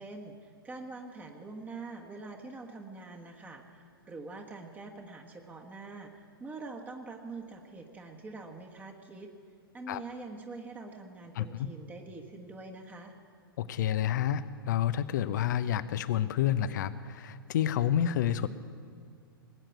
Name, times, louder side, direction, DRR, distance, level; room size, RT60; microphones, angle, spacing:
voice 1, 0.0-9.3 9.7-13.2, right 3 dB, 15° right, 2 dB, 1.4 m, -44 dB
voice 2, 11.4-11.7 13.6-18.5, left 10 dB, 55° left, 15 dB, 0.7 m, -29 dB
20.0 x 8.9 x 8.2 m, 2.2 s
figure-of-eight pair, 105°, 12 cm